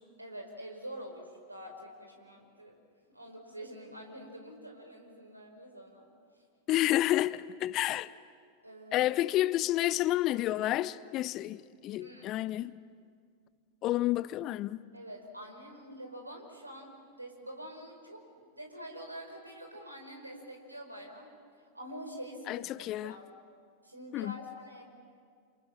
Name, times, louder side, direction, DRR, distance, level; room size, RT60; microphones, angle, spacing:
voice 1, 0.2-2.7 3.1-6.1 8.6-9.1 12.0-12.3 14.9-18.2 18.5-21.3 21.7-23.2 23.8-24.8, equal, 85° right, 5.0 m, -46 dB
voice 2, 6.7-8.1 8.9-12.7 13.8-14.8 22.5-23.1 24.1-24.4, left 15 dB, 35° left, 0.6 m, -30 dB
29.0 x 28.0 x 7.3 m
figure-of-eight pair, 90°, 0 cm